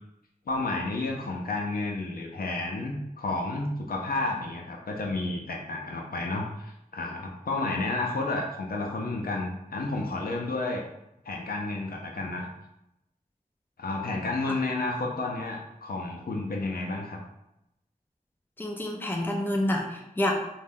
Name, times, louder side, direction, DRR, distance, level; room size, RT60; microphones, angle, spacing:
voice 1, 0.5-10.8 11.2-12.5 13.8-17.2, left 2 dB, 75° left, 0 dB, 0.5 m, -31 dB
voice 2, 18.6-20.4, left 1 dB, 15° left, 0 dB, 0.5 m, -28 dB
2.6 x 2.2 x 3.5 m, 0.86 s
wide cardioid pair, 70°, 15 cm